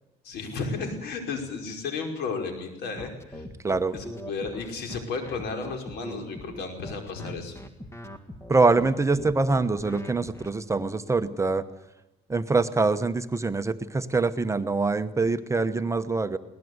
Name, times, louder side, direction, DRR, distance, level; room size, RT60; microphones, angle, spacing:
voice 1, 0.2-3.4 3.9-7.6, left 4 dB, 75° left, 4 dB, 5.2 m, -33 dB
sound 1, 3.0-10.5, left 1 dB, 15° left, 1.9 m, -41 dB
voice 2, 8.5-11.6 12.3-16.4, right 3 dB, 15° right, 10 dB, 1.0 m, -24 dB
22.0 x 18.0 x 8.1 m, 0.95 s
cardioid pair, 110°, 17 cm